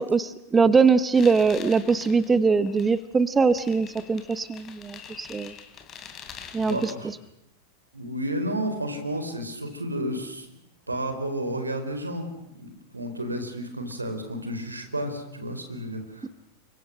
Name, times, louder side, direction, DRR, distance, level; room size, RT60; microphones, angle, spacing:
voice 1, 0.0-5.5 6.5-6.9, right 5 dB, 15° right, 15 dB, 1.0 m, -22 dB
sound 1, 1.1-6.9, left 7 dB, 30° left, 3.1 m, -45 dB
voice 2, 6.6-7.1 7.9-10.5 10.9-16.3, right 1 dB, 80° right, 7 dB, 4.5 m, -31 dB
29.5 x 24.5 x 6.7 m, 0.80 s
figure-of-eight pair, 90°, 0 cm